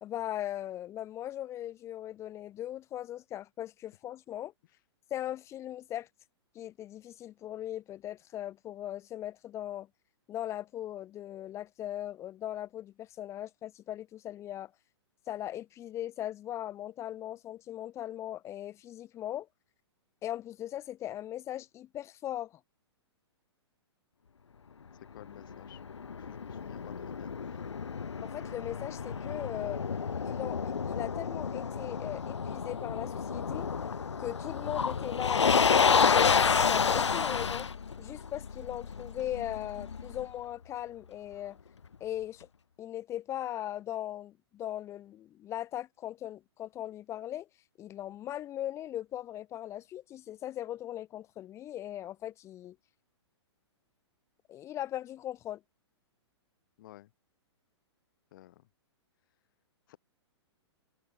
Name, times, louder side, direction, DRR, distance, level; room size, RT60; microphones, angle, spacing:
voice 1, 0.0-4.5 5.1-6.1 6.5-9.9 10.3-14.7 15.3-19.5 20.2-22.6 28.2-29.8 30.2-33.7 34.2-37.7 38.0-41.6 42.0-42.5 42.8-47.5 47.8-52.8 54.5-55.6, left 12 dB, 20° left, 0.6 m, -39 dB
voice 2, 25.1-25.8 26.2-27.7 56.8-57.1 58.3-58.7 59.9-60.0, left 15 dB, 45° left, 3.1 m, -53 dB
Motor vehicle (road), 25.2-40.2, left 6 dB, 85° left, 0.4 m, -30 dB
figure-of-eight pair, 115°, 15 cm